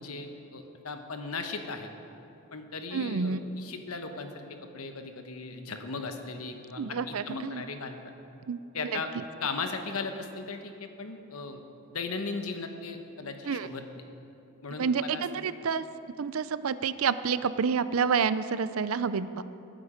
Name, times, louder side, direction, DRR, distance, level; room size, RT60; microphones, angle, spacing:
voice 1, 0.0-1.9 2.5-8.1 8.7-9.1 9.4-11.6 11.9-13.8 14.6-15.2, left 4 dB, 80° left, 6 dB, 1.2 m, -37 dB
voice 2, 2.9-3.4 6.8-7.6 8.5-9.2 13.5-13.7 14.8-15.8 16.2-19.4, right 6 dB, 70° right, 14 dB, 0.5 m, -29 dB
19.5 x 9.2 x 5.2 m, 2.8 s
head